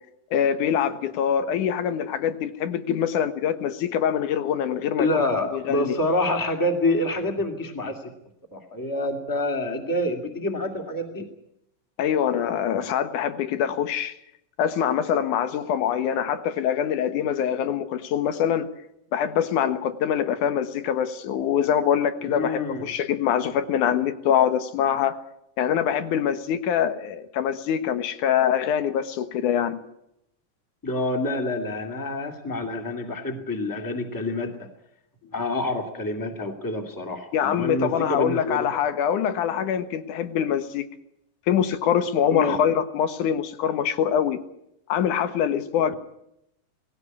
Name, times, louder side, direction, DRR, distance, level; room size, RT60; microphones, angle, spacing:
voice 1, 0.3-5.2 5.5-6.0 12.0-14.1 14.6-18.7 19.1-25.2 25.6-29.8 35.2-35.3 37.3-40.9 41.5-44.4 44.9-45.9, left 9 dB, 75° left, 10 dB, 2.7 m, -24 dB
voice 2, 5.0-8.1 8.5-11.3 22.2-22.9 30.8-34.7 35.3-38.7 42.3-42.6, left 1 dB, 5° left, 4 dB, 2.0 m, -27 dB
19.0 x 17.0 x 9.7 m, 0.80 s
omnidirectional pair, 3.7 m